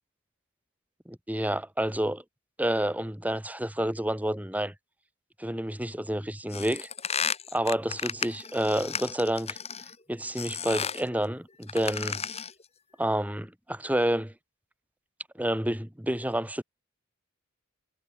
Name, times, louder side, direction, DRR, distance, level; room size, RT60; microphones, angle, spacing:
voice 1, 1.1-2.2 2.6-4.7 5.4-6.9 7.5-9.6 10.1-12.2 13.0-14.3 15.4-16.6, right 1 dB, 5° right, 2.2 m, -29 dB
sound 1, 6.5-9.9 10.4-11.1 11.6-12.6, left 6 dB, 30° left, 4.5 m, -33 dB
head